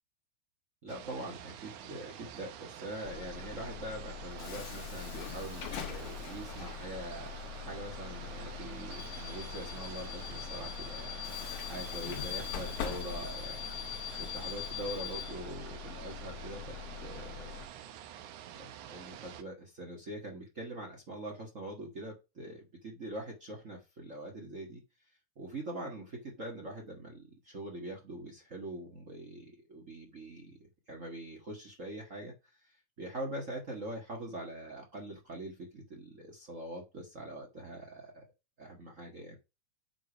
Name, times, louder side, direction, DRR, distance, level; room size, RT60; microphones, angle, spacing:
voice 1, 0.8-7.4 7.7-17.6 18.5-24.8 25.4-30.6 30.9-38.2 38.6-39.4, right 1 dB, 55° right, 0 dB, 0.8 m, -43 dB
sound 1, 0.9-19.4, right 10 dB, 75° right, 2.0 m, -48 dB
Bus / Alarm, 3.0-17.6, left 9 dB, 65° left, 1.6 m, -41 dB
7.5 x 5.0 x 5.0 m, 0.27 s
omnidirectional pair, 4.1 m